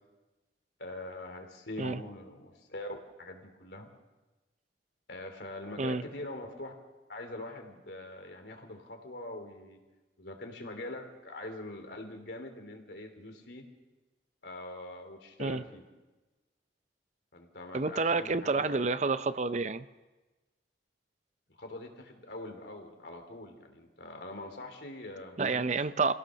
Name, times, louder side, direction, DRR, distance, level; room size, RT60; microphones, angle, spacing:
voice 1, 0.8-3.9 5.1-6.7 7.1-9.8 10.2-13.7 14.4-15.8 17.3-19.0 21.6-25.8, left 1 dB, 65° left, 4 dB, 3.0 m, -43 dB
voice 2, 17.7-19.8 25.4-26.1, right 3 dB, 40° right, 13 dB, 0.6 m, -29 dB
25.5 x 16.5 x 6.4 m, 1.2 s
head